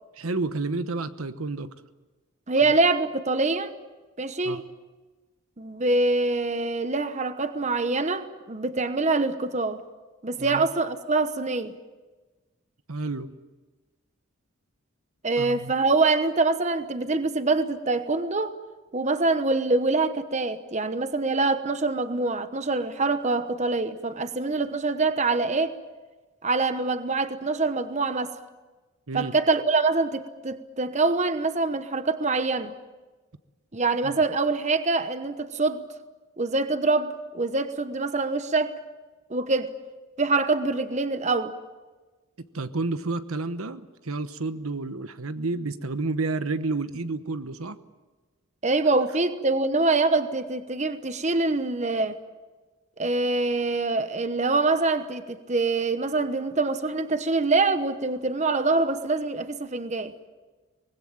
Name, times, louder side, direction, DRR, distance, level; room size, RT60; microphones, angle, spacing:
voice 1, 0.2-1.7 4.4-4.6 10.4-10.7 12.9-13.3 15.4-15.7 29.1-29.3 34.0-34.2 42.4-47.8, right 3 dB, 80° right, 1.1 m, -30 dB
voice 2, 2.5-3.7 4.2-4.6 5.6-9.8 10.2-11.8 15.2-18.5 18.9-25.8 26.4-28.3 29.1-32.7 33.7-35.9 36.4-38.8 39.3-39.7 40.2-41.5 48.6-52.2 53.0-60.1, right 3 dB, 35° right, 1.0 m, -25 dB
24.5 x 20.0 x 8.7 m
head